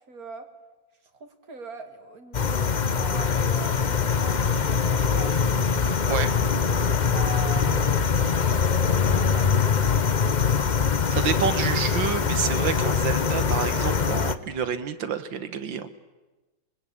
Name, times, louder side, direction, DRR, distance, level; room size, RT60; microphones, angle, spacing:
voice 1, 0.1-0.5 1.2-5.6 7.0-10.7, right 4 dB, 50° right, 6 dB, 2.9 m, -42 dB
sound 1, 2.3-14.3, left 6 dB, 40° left, 0.6 m, -23 dB
voice 2, 11.1-15.9, right 7 dB, 80° right, 11 dB, 2.0 m, -28 dB
25.0 x 22.5 x 8.6 m, 1.1 s
omnidirectional pair, 2.0 m